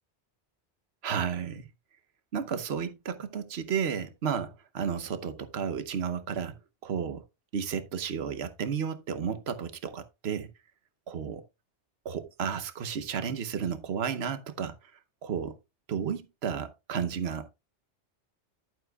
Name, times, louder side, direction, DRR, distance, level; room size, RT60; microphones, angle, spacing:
voice 1, 1.0-1.7 2.3-6.5 6.8-7.2 7.5-10.5 11.1-11.4 12.0-14.8 15.2-15.6 15.9-17.5, right 7 dB, 65° right, 1.1 m, -32 dB
10.5 x 9.3 x 2.3 m
omnidirectional pair, 1.2 m